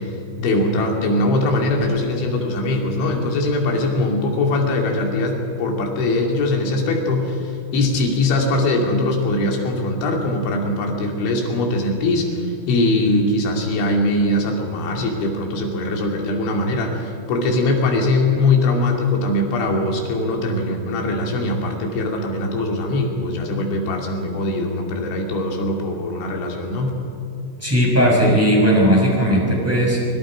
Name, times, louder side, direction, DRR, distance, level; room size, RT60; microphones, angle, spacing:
voice 1, 0.0-26.9, left 2 dB, 65° left, 1 dB, 4.9 m, -21 dB
voice 2, 27.6-30.0, equal, 5° right, -3 dB, 5.6 m, -16 dB
25.5 x 25.5 x 5.1 m, 2.5 s
omnidirectional pair, 5.9 m